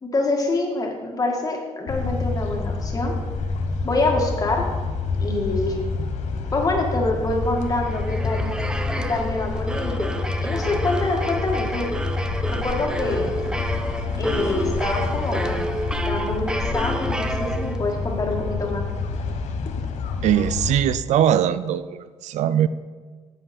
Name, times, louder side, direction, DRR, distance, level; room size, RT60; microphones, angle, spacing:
voice 1, 0.0-3.1 3.8-4.7 5.2-5.8 6.5-8.5 8.9-10.1 10.4-11.9 12.5-13.3 14.2-15.6 16.0-18.9, left 2 dB, 30° left, 1 dB, 1.8 m, -25 dB
sound 1, 1.9-20.7, left 4 dB, 80° left, 0.9 m, -28 dB
sound 2, 7.6-18.1, right 1 dB, 5° right, 0.5 m, -30 dB
voice 2, 20.2-22.7, right 10 dB, 85° right, 15 dB, 0.4 m, -21 dB
9.8 x 7.8 x 4.3 m, 1.5 s
cardioid pair, 125°, 12 cm